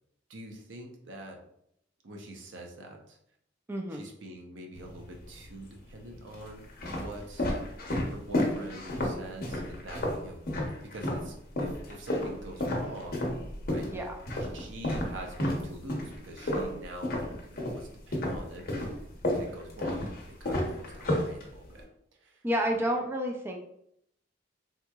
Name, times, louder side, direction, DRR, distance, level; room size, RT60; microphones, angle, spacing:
voice 1, 0.3-1.4 2.0-3.2 3.9-7.5 7.9-10.4 10.8-13.2 13.7-13.9 14.5-18.9 19.2-20.1 20.4-22.4, right 1 dB, 80° right, 2 dB, 0.6 m, -45 dB
voice 2, 3.7-4.0 13.9-14.2 22.4-23.6, equal, 15° right, 1 dB, 0.3 m, -30 dB
sound 1, 4.8-5.5 6.2-11.3 11.6-17.8 18.1-21.8, left 1 dB, 55° left, 0.7 m, -31 dB
3.5 x 2.8 x 2.3 m, 0.73 s
head